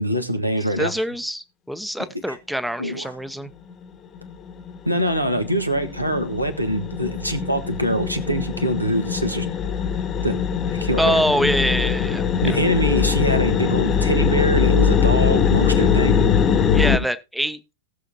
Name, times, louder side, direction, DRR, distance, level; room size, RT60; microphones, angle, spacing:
voice 1, 0.0-0.9 2.3-2.4 2.8-3.1 4.8-9.5 10.2-10.4 10.7-11.2 12.4-16.2, equal, 90° right, 7 dB, 1.4 m, -23 dB
voice 2, 0.8-3.5 11.0-12.6 16.7-17.6, equal, ahead, 13 dB, 0.8 m, -24 dB
sound 1, 3.7-3.9 4.2-17.0, left 7 dB, 30° left, 1.1 m, -22 dB
18.5 x 6.9 x 2.8 m, 0.26 s
figure-of-eight pair, 90°, 0 cm